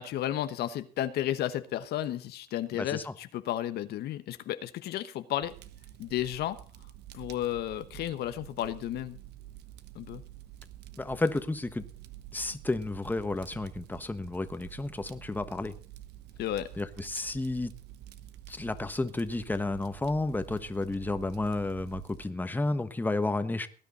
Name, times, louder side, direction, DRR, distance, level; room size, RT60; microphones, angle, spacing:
voice 1, 0.0-5.5 6.0-6.6 7.1-9.2 9.9-10.2 16.4-16.7, left 12 dB, 70° left, 1.1 m, -33 dB
voice 2, 2.7-3.1 11.0-11.8 12.3-15.7 16.8-17.7 18.5-23.7, left 2 dB, 10° left, 1.2 m, -32 dB
Fire, 5.4-22.3, right 13 dB, 80° right, 1.1 m, -49 dB
18.5 x 10.5 x 4.1 m
cardioid pair, 110°, 17 cm